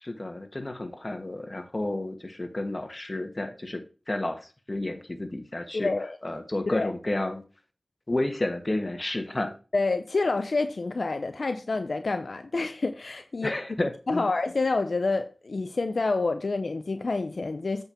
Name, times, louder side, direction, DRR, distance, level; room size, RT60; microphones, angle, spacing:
voice 1, 0.0-5.9 6.2-7.4 8.1-9.5 13.4-14.2, left 1 dB, 40° left, 1.5 m, -31 dB
voice 2, 5.7-6.2 6.7-6.9 9.7-13.5 14.1-17.8, left 3 dB, 75° left, 0.6 m, -28 dB
8.0 x 5.3 x 4.4 m
wide cardioid pair, 50°, 0 cm